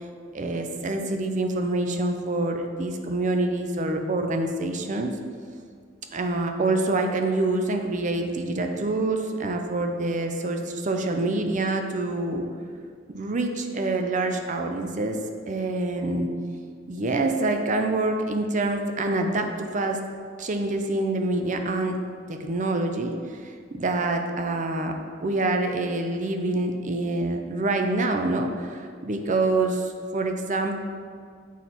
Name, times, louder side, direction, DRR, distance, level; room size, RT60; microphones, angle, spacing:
voice 1, 0.3-5.1 6.1-12.5 13.1-15.2 15.5-16.3 16.9-20.0 20.4-22.0 22.3-24.9 25.2-30.8, right 2 dB, 40° right, 5 dB, 0.5 m, -26 dB
7.1 x 4.3 x 4.2 m, 2.1 s
head